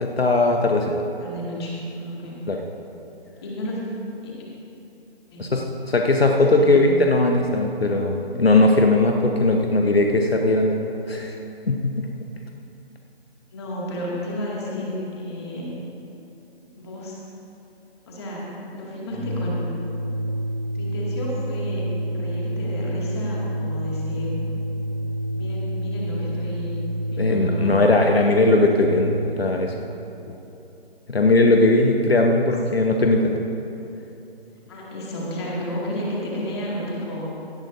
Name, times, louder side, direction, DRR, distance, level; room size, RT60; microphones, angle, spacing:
voice 1, 0.0-1.0 2.5-2.6 5.4-11.3 11.7-12.1 27.2-29.7 31.1-33.4, left 2 dB, 70° left, 2 dB, 1.0 m, -19 dB
voice 2, 1.2-2.4 3.4-4.0 4.2-4.3 5.3-5.5 6.5-7.0 13.5-15.7 16.7-17.2 18.1-18.5 18.7-19.7 20.7-24.5 24.9-25.0 25.3-26.8 27.1-27.8 34.7-37.3, equal, 25° left, -5 dB, 2.2 m, -32 dB
Organ, 19.1-29.4, equal, ahead, 2.1 m, -28 dB
17.0 x 12.0 x 2.7 m, 2.9 s
figure-of-eight pair, 145°, 31 cm